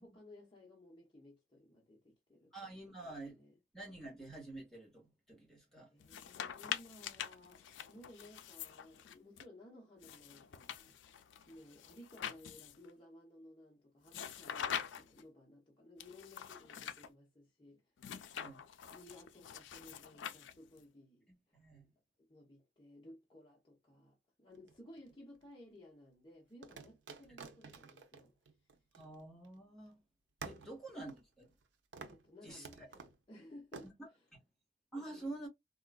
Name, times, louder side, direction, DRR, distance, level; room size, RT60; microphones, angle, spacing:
voice 1, 0.0-3.6 5.9-18.3 18.8-21.6 22.3-28.3 30.5-30.7 32.0-34.3 34.9-35.4, left 1 dB, 25° left, 0.7 m, -58 dB
voice 2, 2.5-3.4 3.7-5.9 18.4-18.6 21.5-21.9 29.0-30.0 30.4-31.5 32.4-32.9 34.0-34.1 34.9-35.5, right 2 dB, ahead, 1.4 m, -48 dB
sound 1, 6.0-9.4 10.0-12.9 14.1-15.2 16.0-17.1 18.0-20.8, left 9 dB, 85° left, 0.4 m, -45 dB
sound 2, 24.5-25.4 26.6-29.6 29.9-30.0 30.4-31.7 31.9-32.3 32.6-33.2 33.7-33.9, right 5 dB, 85° right, 0.6 m, -51 dB
3.6 x 2.4 x 2.2 m
head